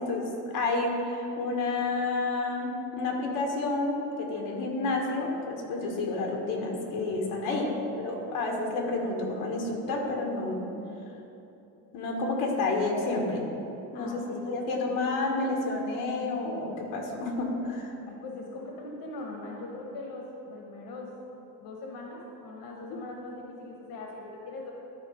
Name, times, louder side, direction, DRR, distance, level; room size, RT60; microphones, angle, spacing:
voice 1, 0.0-7.7 8.0-10.6 11.9-13.5 13.9-17.9, left 2 dB, 85° left, 0 dB, 1.5 m, -30 dB
voice 2, 7.4-7.8 8.1-8.2 13.9-14.6 14.9-15.0 18.1-21.1 21.6-24.7, left 2 dB, 65° left, -1 dB, 1.4 m, -41 dB
12.0 x 4.4 x 5.1 m, 2.9 s
cardioid pair, 115°, 37 cm